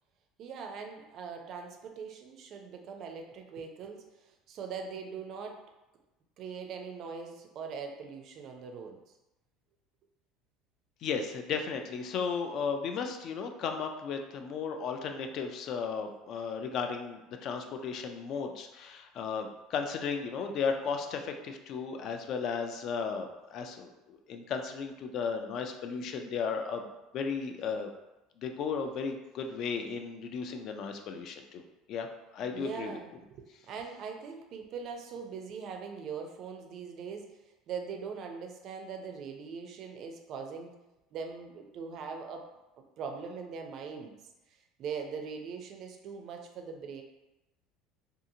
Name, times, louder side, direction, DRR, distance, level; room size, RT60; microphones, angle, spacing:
voice 1, 0.4-4.0 4.5-5.6 6.4-9.0 32.5-37.3 37.7-40.8 41.1-42.4 43.0-44.1 44.8-47.0, right 6 dB, 45° right, 3 dB, 0.4 m, -41 dB
voice 2, 11.0-26.9 27.1-27.9 28.4-31.6 31.9-32.1 32.3-33.0, left 5 dB, 45° left, 5 dB, 0.3 m, -35 dB
2.7 x 2.4 x 2.6 m, 0.98 s
cardioid pair, 140°, 0 cm